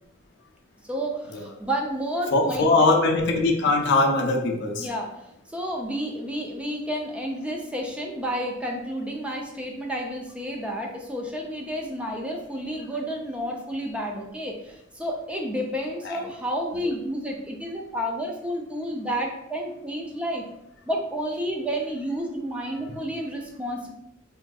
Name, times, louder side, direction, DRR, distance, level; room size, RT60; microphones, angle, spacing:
voice 1, 0.8-2.9 4.8-20.4 20.9-23.9, equal, 5° right, 0 dB, 0.3 m, -31 dB
voice 2, 2.3-4.9 16.0-16.2, left 3 dB, 60° left, 3 dB, 0.4 m, -21 dB
3.5 x 2.4 x 2.3 m, 0.82 s
head